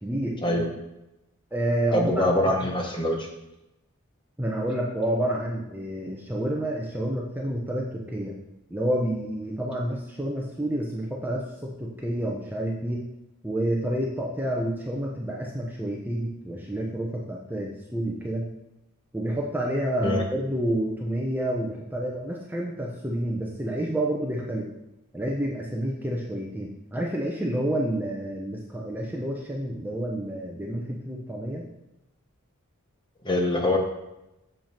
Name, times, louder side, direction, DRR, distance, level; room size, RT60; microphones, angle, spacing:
voice 1, 0.0-0.6 1.5-2.7 4.4-8.4 8.7-13.0 13.4-18.5 19.1-24.7 25.1-31.7, right 1 dB, 10° right, -2 dB, 0.7 m, -29 dB
voice 2, 1.9-3.3 20.0-20.2 33.2-33.8, left 1 dB, 20° left, 1 dB, 1.2 m, -24 dB
7.3 x 5.4 x 4.4 m, 0.92 s
head